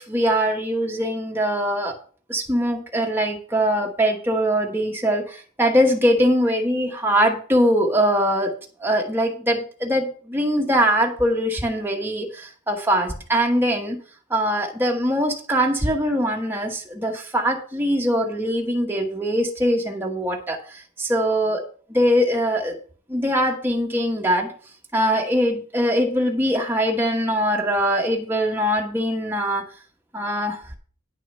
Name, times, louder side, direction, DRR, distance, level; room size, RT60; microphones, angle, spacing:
voice 1, 0.0-2.0 2.3-8.5 8.8-14.0 14.3-21.6 21.9-22.8 23.1-24.5 24.9-29.7 30.1-30.6, equal, 10° right, 1 dB, 1.1 m, -22 dB
10.0 x 6.3 x 5.3 m, 0.43 s
head